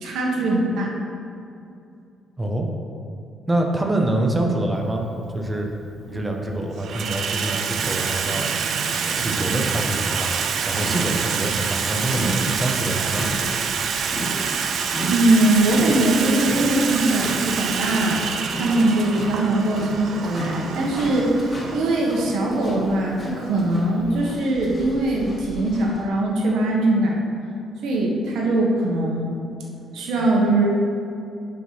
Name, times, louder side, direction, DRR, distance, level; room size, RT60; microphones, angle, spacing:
voice 1, 0.0-0.9 15.1-18.2 18.5-27.2 27.8-29.3 29.9-30.6, right 2 dB, 80° right, -2 dB, 1.3 m, -21 dB
voice 2, 2.4-2.7 3.5-5.0 5.3-5.7 6.1-8.5 9.2-13.3, right 1 dB, 20° right, 1 dB, 1.1 m, -25 dB
Water tap faucet / Sink (filling or washing), 4.9-5.0 5.9-6.3 6.6-24.2, right 6 dB, 65° right, 0.5 m, -27 dB
sound 1, 7.8-26.0, equal, 25° left, 1.8 m, -35 dB
9.2 x 3.9 x 5.9 m, 2.6 s
cardioid pair, 90°, 0 cm